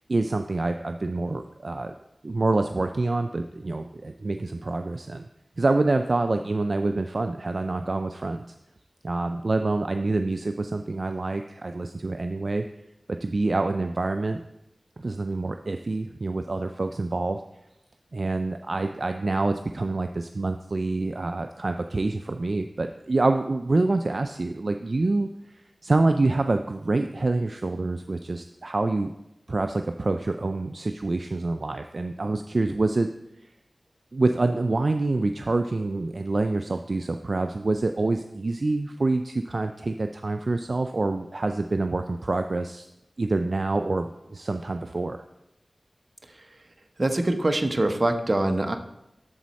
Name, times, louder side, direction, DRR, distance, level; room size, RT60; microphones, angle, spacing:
voice 1, 0.1-1.9 2.2-5.3 5.6-8.5 9.0-12.6 13.1-14.4 15.0-17.4 18.1-29.1 29.5-33.1 34.1-42.9 43.2-45.2, right 2 dB, 55° right, 7 dB, 0.3 m, -26 dB
voice 2, 47.0-48.8, right 1 dB, 40° right, 6 dB, 0.8 m, -23 dB
12.5 x 4.2 x 4.1 m, 0.88 s
wide cardioid pair, 60°, 0 cm